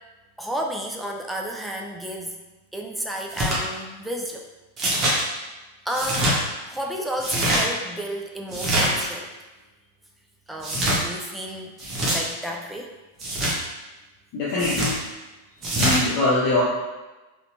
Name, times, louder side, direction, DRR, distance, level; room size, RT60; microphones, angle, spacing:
voice 1, 0.4-2.3 2.7-4.5 5.9-6.4 6.6-9.3 10.5-11.8 12.1-13.0, equal, 5° right, 1 dB, 0.4 m, -31 dB
sound 1, 3.3-3.6 4.8-5.2 5.9-6.4 7.2-7.6 8.5-9.1 10.6-11.0 11.8-12.2 13.2-13.6 14.6-15.0 15.6-16.0, right 1 dB, 30° right, 1.1 m, -23 dB
voice 2, 14.3-15.0 15.8-16.6, left 2 dB, 45° left, -7 dB, 0.8 m, -23 dB
4.1 x 3.1 x 2.7 m, 1.1 s
figure-of-eight pair, 90°, 0 cm